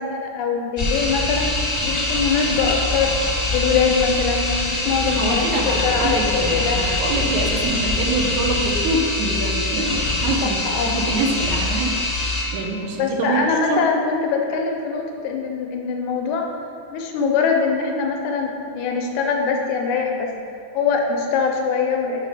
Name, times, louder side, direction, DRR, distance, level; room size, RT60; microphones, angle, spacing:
voice 1, 0.0-3.1 3.5-6.8 10.7-11.0 13.0-16.5 16.9-20.3 20.7-22.3, left 5 dB, 80° left, 2 dB, 2.0 m, -23 dB
sound 1, 0.8-12.4, left 2 dB, 40° left, 0.9 m, -23 dB
voice 2, 5.0-11.9 12.5-13.8, right 2 dB, 75° right, 1 dB, 2.1 m, -25 dB
5.9 x 5.2 x 4.8 m, 2.5 s
omnidirectional pair, 3.6 m